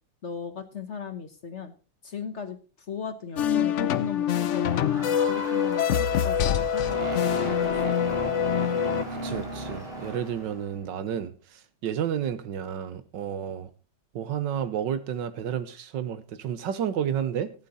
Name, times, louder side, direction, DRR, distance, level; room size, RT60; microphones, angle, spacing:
voice 1, 0.2-1.7 2.0-8.5, left 6 dB, 45° left, 1.1 m, -37 dB
sound 1, 3.4-9.0, left 9 dB, 60° left, 0.7 m, -25 dB
Crowd, 3.9-10.7, right 1 dB, ahead, 5.3 m, -43 dB
sound 2, 6.8-10.9, right 1 dB, 35° right, 2.1 m, -35 dB
voice 2, 9.1-13.7 14.1-17.5, right 9 dB, 75° right, 1.6 m, -31 dB
15.5 x 8.8 x 4.1 m
omnidirectional pair, 2.0 m